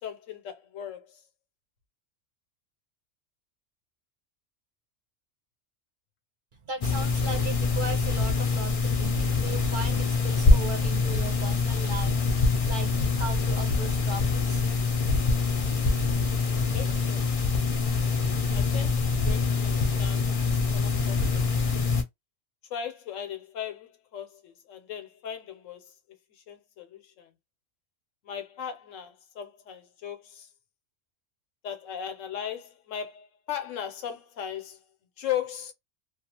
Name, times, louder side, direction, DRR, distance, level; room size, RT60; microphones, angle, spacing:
voice 1, 0.0-1.2 16.7-17.5 18.5-21.6 22.7-25.9 26.3-27.3 28.2-30.5 31.6-34.8 35.2-35.7, left 9 dB, 90° left, 1.1 m, -38 dB
voice 2, 6.6-14.6, right 3 dB, 50° right, 0.7 m, -37 dB
sound 1, 6.8-22.0, left 4 dB, 45° left, 0.4 m, -25 dB
2.4 x 2.3 x 2.8 m
omnidirectional pair, 1.3 m